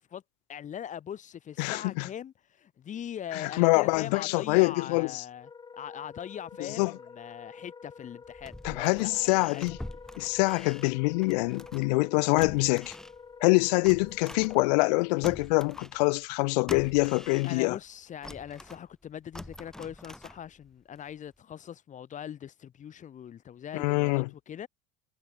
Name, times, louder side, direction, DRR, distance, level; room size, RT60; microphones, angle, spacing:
voice 1, 0.5-5.5 5.8-9.7 17.4-24.7, left 9 dB, 40° left, 3.8 m, -41 dB
voice 2, 1.6-2.1 3.3-5.2 6.6-6.9 8.6-9.8 10.2-12.9 13.4-17.8 23.7-24.3, left 28 dB, 90° left, 0.4 m, -25 dB
Wind instrument woodwind instrument, 5.4-15.4, left 5 dB, 20° left, 1.4 m, -49 dB
puertas y cerraduras crujientes, 8.2-12.0 12.4-15.0 15.2-17.9 18.2-20.7 21.1-21.2, left 1 dB, 5° left, 0.6 m, -45 dB
supercardioid pair, 120°, 21 cm